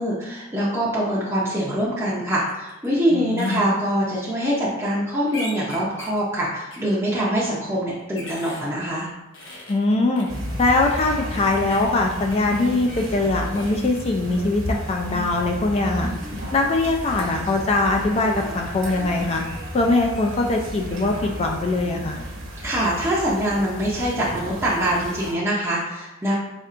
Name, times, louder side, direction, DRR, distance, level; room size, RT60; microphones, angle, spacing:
voice 1, 0.0-9.1 22.6-26.4, equal, 10° right, -8 dB, 0.6 m, -24 dB
sound 1, 2.5-2.9 3.4-3.6 5.3-6.2 6.7-6.8 7.7-8.7 9.3-10.3 11.4-13.8, left 1 dB, 65° left, 0.9 m, -39 dB
voice 2, 3.1-3.7 9.7-10.3 10.6-16.1 16.5-19.4 19.7-22.2, left 2 dB, 30° left, 2 dB, 0.3 m, -22 dB
sound 2, 10.3-25.3, equal, 75° right, 1.1 m, -33 dB
4.2 x 3.4 x 2.5 m, 1.0 s
head